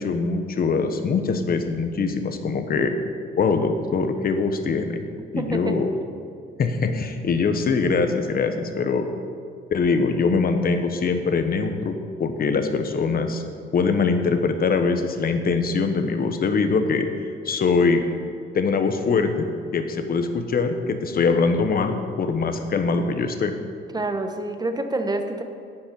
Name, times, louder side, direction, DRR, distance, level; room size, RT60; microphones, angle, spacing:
voice 1, 0.0-2.9 3.4-5.0 5.3-5.9 6.6-9.0 9.7-13.4 13.7-17.1 17.4-18.0 18.5-19.5 19.7-23.5, left 4 dB, 50° left, 7 dB, 1.1 m, -23 dB
voice 2, 5.3-5.8 23.9-25.4, right 2 dB, 20° right, 6 dB, 1.1 m, -27 dB
10.5 x 5.5 x 8.6 m, 2.3 s
cardioid pair, 90°, 20 cm